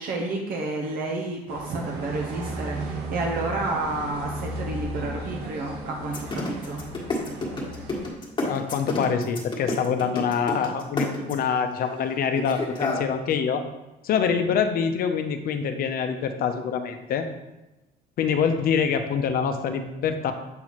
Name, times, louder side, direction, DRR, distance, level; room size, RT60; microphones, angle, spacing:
voice 1, 0.0-6.8, right 2 dB, 60° right, 0 dB, 0.8 m, -30 dB
sound 1, 1.5-8.1, right 2 dB, 85° right, 1.2 m, -35 dB
sound 2, 6.0-11.5 12.3-13.0, left 2 dB, 30° left, 1.4 m, -28 dB
voice 2, 8.4-13.6 14.0-17.3 18.2-20.3, left 7 dB, 60° left, 7 dB, 0.6 m, -25 dB
7.5 x 4.1 x 3.1 m, 1.0 s
cardioid pair, 110°, 17 cm